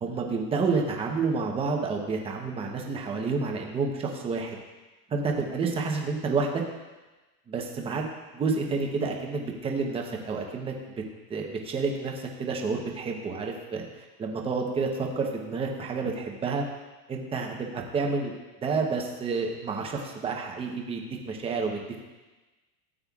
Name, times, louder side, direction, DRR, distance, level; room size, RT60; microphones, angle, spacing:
voice 1, 0.0-4.6 5.1-6.6 7.5-8.1 8.3-10.7 11.3-16.6 17.1-18.3 18.6-21.8, right 4 dB, 10° right, 1 dB, 0.8 m, -29 dB
17.5 x 8.7 x 2.4 m, 1.2 s
supercardioid pair, 165°, 47 cm